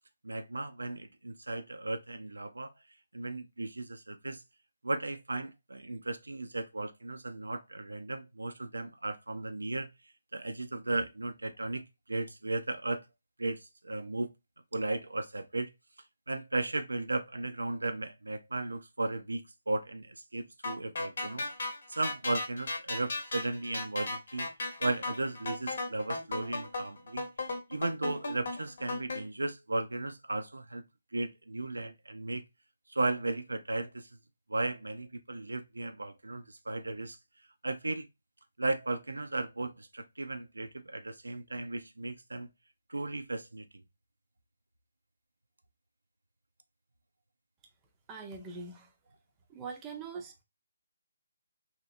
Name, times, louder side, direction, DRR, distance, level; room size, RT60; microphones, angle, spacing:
voice 1, 0.2-2.7 3.1-4.4 4.8-9.9 10.3-11.8 12.1-13.0 13.4-14.3 14.7-15.7 16.3-24.5 24.8-27.3 27.7-30.9 31.1-32.4 32.9-34.2 34.5-37.2 37.6-38.1 38.6-42.5 42.9-43.7, right 2 dB, 80° right, 0.4 m, -35 dB
sound 1, 20.6-29.2, left 2 dB, 55° left, 0.9 m, -36 dB
voice 2, 48.1-48.9 49.5-50.4, right 4 dB, 15° right, 0.6 m, -42 dB
3.0 x 2.8 x 2.5 m
figure-of-eight pair, 145°, 0 cm